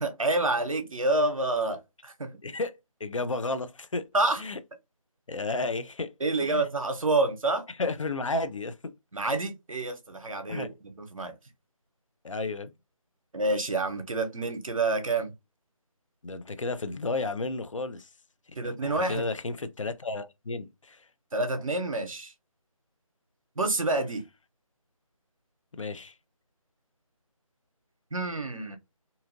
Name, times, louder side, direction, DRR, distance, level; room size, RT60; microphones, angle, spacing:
voice 1, 0.0-2.3 4.1-4.4 6.2-7.7 9.1-11.3 13.3-15.3 18.6-19.3 21.3-22.3 23.6-24.2 28.1-28.8, right 2 dB, 70° right, 0.8 m, -28 dB
voice 2, 2.4-4.1 4.4-4.6 5.3-6.1 6.4-6.7 7.7-8.9 10.5-10.7 12.2-12.7 16.2-18.1 18.5-18.6 18.8-21.1 25.7-26.1, left 3 dB, 60° left, 0.4 m, -32 dB
2.7 x 2.6 x 2.6 m
figure-of-eight pair, 160°, 18 cm